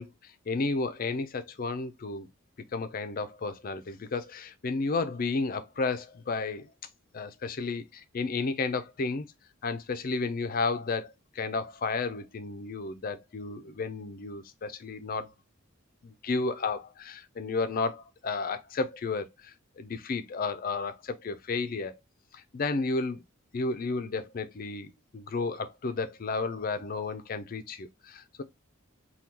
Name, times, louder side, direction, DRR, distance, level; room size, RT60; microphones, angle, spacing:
voice 1, 0.0-2.3 2.7-6.7 7.1-9.3 9.6-15.3 16.0-21.9 22.3-23.2 23.5-28.4, left 3 dB, 45° left, 0.4 m, -32 dB
3.6 x 2.3 x 2.8 m
head